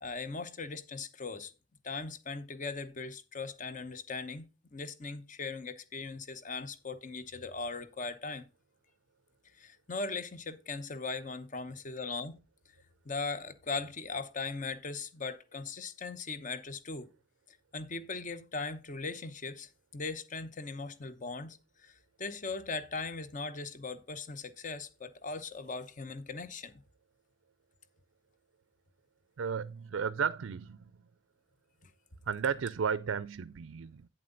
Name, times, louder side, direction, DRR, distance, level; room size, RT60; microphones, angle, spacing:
voice 1, 0.0-1.5 1.8-4.5 4.7-8.5 9.5-12.3 13.0-17.1 17.5-21.6 21.8-26.8, left 4 dB, 40° left, 0.9 m, -39 dB
voice 2, 29.4-30.9 32.3-34.1, right 6 dB, 85° right, 0.4 m, -33 dB
9.0 x 7.6 x 3.9 m
head